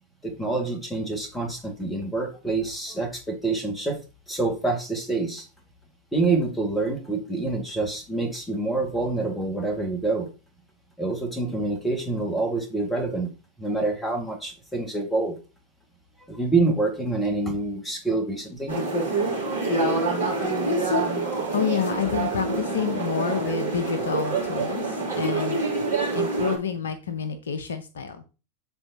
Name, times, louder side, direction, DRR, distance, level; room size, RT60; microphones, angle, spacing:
voice 1, 0.2-4.0 4.3-5.5 6.1-10.3 11.0-13.3 13.6-15.4 16.3-18.7 23.5-23.6, right 3 dB, 10° left, 4 dB, 1.9 m, -26 dB
sound 1, 18.7-26.6, right 2 dB, 85° right, 3.2 m, -26 dB
voice 2, 21.5-25.6 26.1-28.2, left 6 dB, 65° left, 11 dB, 0.7 m, -28 dB
11.5 x 3.9 x 2.8 m, 0.32 s
figure-of-eight pair, 90°, 0 cm